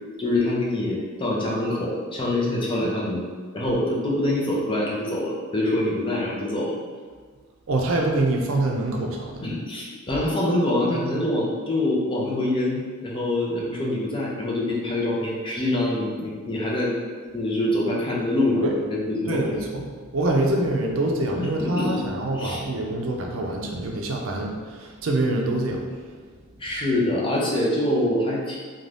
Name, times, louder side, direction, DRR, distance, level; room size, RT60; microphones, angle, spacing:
voice 1, 0.2-3.3 3.5-6.8 9.4-16.9 17.3-19.5 21.4-22.0 22.3-22.6 26.6-28.6, left 1 dB, 25° left, -4 dB, 0.5 m, -25 dB
voice 2, 7.7-9.5 18.6-18.7 19.3-26.2, right 2 dB, 75° right, 1 dB, 0.4 m, -25 dB
2.5 x 2.2 x 3.2 m, 1.5 s
head